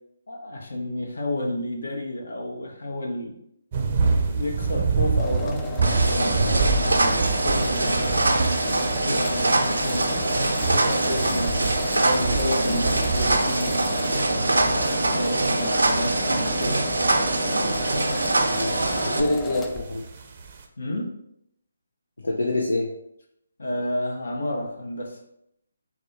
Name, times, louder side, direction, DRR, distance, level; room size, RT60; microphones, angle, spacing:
voice 1, 0.3-3.4 4.3-17.0 20.8-21.1 23.6-25.2, left 1 dB, 70° left, 1 dB, 1.0 m, -31 dB
sound 1, 3.7-20.6, right 4 dB, 40° right, 0.6 m, -29 dB
sound 2, 5.2-19.9, left 3 dB, 15° left, 0.3 m, -34 dB
sound 3, 5.8-19.2, right 2 dB, 90° right, 0.6 m, -24 dB
voice 2, 18.5-20.0 22.2-22.9, left 2 dB, 85° left, -1 dB, 0.7 m, -26 dB
4.2 x 2.2 x 4.5 m, 0.74 s
figure-of-eight pair, 155°, 0 cm